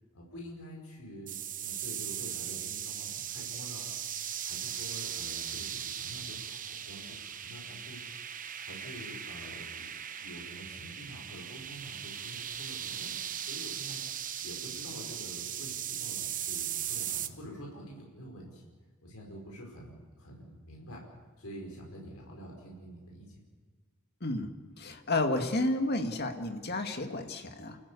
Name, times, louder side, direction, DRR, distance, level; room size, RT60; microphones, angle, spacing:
voice 1, 0.1-3.9 4.4-8.2 8.6-9.9 10.2-14.0 14.4-18.7 19.0-21.0 21.4-23.4, equal, 80° left, -2 dB, 5.3 m, -47 dB
sound 1, 1.3-17.3, right 9 dB, 40° right, 1.0 m, -38 dB
voice 2, 24.2-24.5 24.8-27.8, left 2 dB, 50° left, 5 dB, 2.1 m, -31 dB
29.5 x 14.5 x 8.4 m, 1.5 s
head